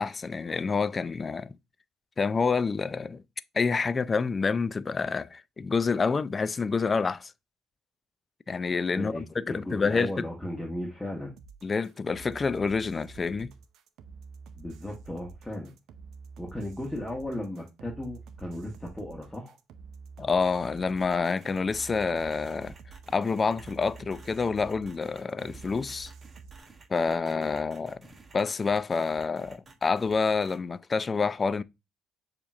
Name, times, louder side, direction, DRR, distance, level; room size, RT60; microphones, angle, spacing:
voice 1, 0.0-1.5 2.2-3.2 3.5-7.3 8.5-10.1 11.6-13.5 20.2-22.7 23.1-26.1 26.9-28.1 28.3-31.6, left 4 dB, 30° left, 0.3 m, -28 dB
voice 2, 8.9-11.3 14.6-15.7 16.4-19.6, left 1 dB, 10° left, 1.3 m, -36 dB
sound 1, 11.4-26.6, right 5 dB, 70° right, 0.5 m, -48 dB
sound 2, 21.0-30.6, right 4 dB, 30° right, 1.3 m, -53 dB
6.9 x 2.9 x 2.4 m
supercardioid pair, 70°, 0 cm